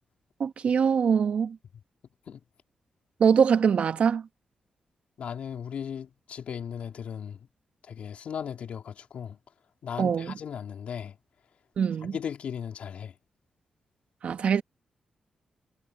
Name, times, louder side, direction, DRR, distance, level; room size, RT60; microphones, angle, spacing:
voice 1, 0.4-1.6 3.2-4.3 10.0-10.3 11.8-12.1 14.2-14.6, right 7 dB, 70° right, 1.4 m, -23 dB
voice 2, 5.2-7.5 7.8-9.4 9.8-11.2 12.0-13.2, left 8 dB, 75° left, 3.4 m, -37 dB
supercardioid pair, 50°, 2 cm